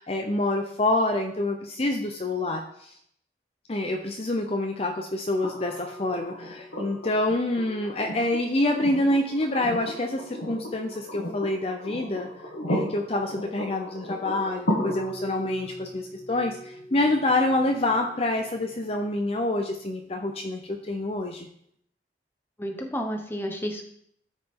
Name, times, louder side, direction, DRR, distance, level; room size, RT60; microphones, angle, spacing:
voice 1, 0.0-2.9 3.7-12.3 12.7-21.5, left 2 dB, 35° left, 4 dB, 0.7 m, -27 dB
sound 1, 5.4-19.4 21.1-21.2, equal, 85° left, 2.0 m, -35 dB
voice 2, 22.6-23.8, equal, 15° left, 3 dB, 1.0 m, -31 dB
13.0 x 4.9 x 3.7 m, 0.70 s
head